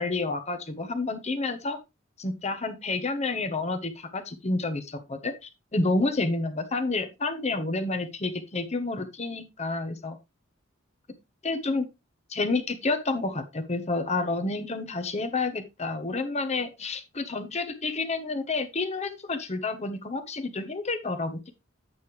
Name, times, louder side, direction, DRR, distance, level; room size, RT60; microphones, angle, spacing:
voice 1, 0.0-1.8 2.2-10.2 11.4-11.9 12.3-21.5, left 3 dB, 30° left, 8 dB, 1.0 m, -29 dB
8.8 x 6.5 x 3.2 m, 0.24 s
head